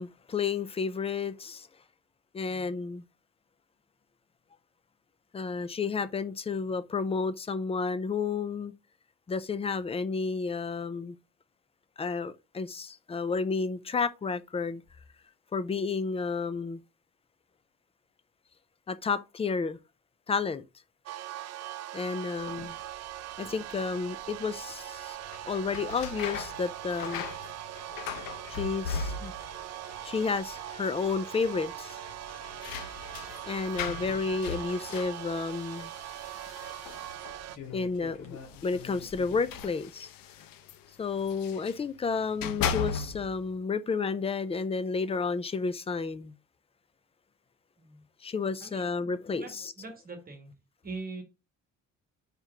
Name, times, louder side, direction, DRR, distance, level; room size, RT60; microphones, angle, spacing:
voice 1, 0.0-1.7 2.3-3.0 5.3-8.7 9.3-11.2 12.0-14.8 15.5-16.8 18.9-19.8 20.3-20.6 21.9-22.8 23.4-25.2 25.5-27.2 28.5-29.3 30.0-32.0 33.5-35.9 37.7-40.1 41.0-46.3 48.2-49.7, left 4 dB, 20° left, 0.5 m, -31 dB
sound 1, 21.1-37.6, right 13 dB, 50° right, 0.6 m, -41 dB
sound 2, 22.4-39.6, left 6 dB, 55° left, 2.2 m, -52 dB
sound 3, 25.2-29.6 29.9-30.6 30.9-31.0 32.1-37.5 38.3-41.8 42.2-43.4, left 6 dB, 85° left, 1.0 m, -38 dB
voice 2, 48.6-49.5 49.8-50.5 50.8-51.2, right 3 dB, 25° right, 1.6 m, -43 dB
5.2 x 4.6 x 5.8 m
cardioid pair, 150°, 33 cm